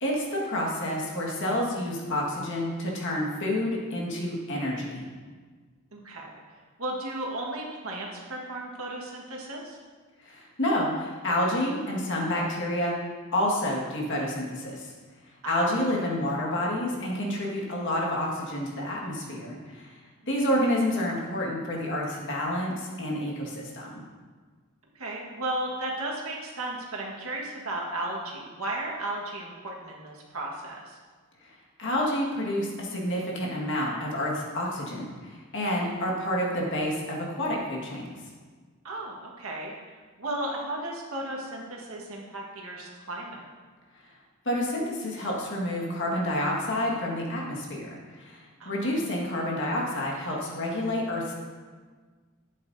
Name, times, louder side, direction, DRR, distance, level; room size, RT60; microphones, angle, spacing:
voice 1, 0.0-5.0 10.2-12.9 13.3-14.9 15.5-20.0 20.3-24.0 31.4-31.5 31.8-38.2 44.5-47.9 48.2-51.3, left 1 dB, 55° left, -3 dB, 1.8 m, -29 dB
voice 2, 5.9-6.3 6.8-9.8 15.4-15.8 24.9-31.0 38.8-43.4 48.6-49.0, right 1 dB, 75° right, -2 dB, 1.6 m, -35 dB
11.5 x 8.5 x 2.7 m, 1.5 s
head